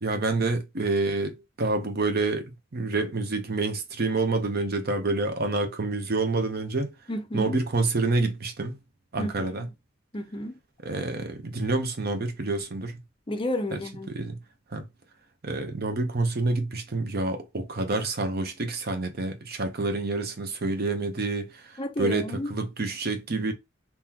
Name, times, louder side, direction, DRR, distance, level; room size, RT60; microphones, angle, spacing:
voice 1, 0.0-6.9 7.3-8.8 9.1-9.7 10.8-12.9 13.7-13.8 14.1-14.4 14.7-14.9 15.4-23.5, right 3 dB, 50° right, 0.8 m, -28 dB
voice 2, 7.1-7.6 9.2-9.7 10.1-10.6 13.3-14.1 21.8-22.5, left 1 dB, 25° left, 0.5 m, -32 dB
3.7 x 2.7 x 2.9 m
head